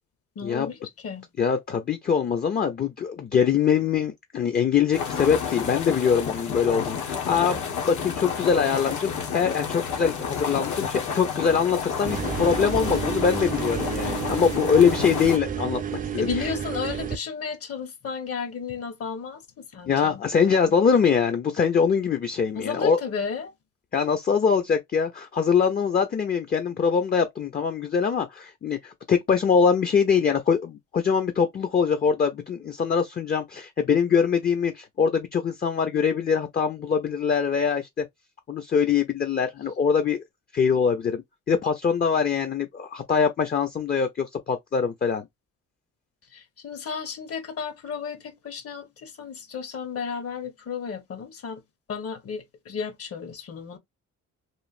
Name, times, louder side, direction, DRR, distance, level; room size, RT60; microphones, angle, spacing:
voice 1, 0.4-1.3 16.2-20.8 22.5-23.5 46.3-51.6 51.9-53.8, left 6 dB, 50° left, 0.9 m, -33 dB
voice 2, 1.4-7.6 7.9-16.5 19.9-23.0 23.9-38.1 38.5-40.2 40.5-41.2 41.5-45.3, left 6 dB, 30° left, 0.5 m, -23 dB
sound 1, 4.9-15.4, left 6 dB, 75° left, 1.0 m, -31 dB
sound 2, 12.1-17.2, right 8 dB, 30° right, 0.4 m, -31 dB
3.1 x 2.5 x 2.4 m
cardioid pair, 90°, 30 cm